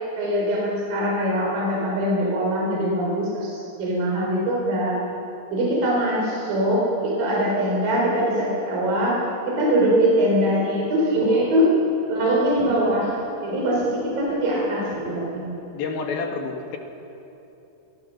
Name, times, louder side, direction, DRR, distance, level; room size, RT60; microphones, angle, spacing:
voice 1, 0.2-5.0 5.5-9.2 9.5-11.7 12.1-15.5, equal, 60° right, -4 dB, 5.7 m, -22 dB
voice 2, 15.7-16.8, left 4 dB, 70° left, 3 dB, 3.6 m, -29 dB
27.5 x 23.0 x 6.5 m, 3.0 s
omnidirectional pair, 4.6 m